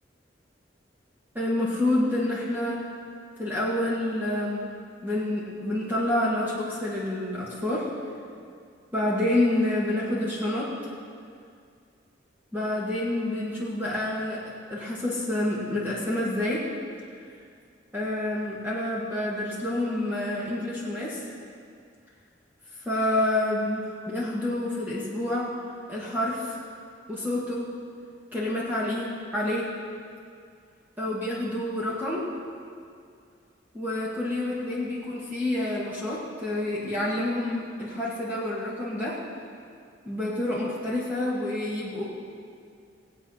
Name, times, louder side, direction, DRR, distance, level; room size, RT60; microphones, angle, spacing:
voice 1, 1.3-2.8 3.4-4.7 5.0-7.9 8.9-10.7 12.5-14.4 14.7-16.6 17.9-21.2 22.9-25.5 25.9-26.6 27.1-27.7 28.3-29.7 31.0-32.2 33.7-39.2 40.1-42.0, left 1 dB, 10° right, -7 dB, 2.0 m, -28 dB
18.5 x 8.3 x 5.8 m, 2.3 s
head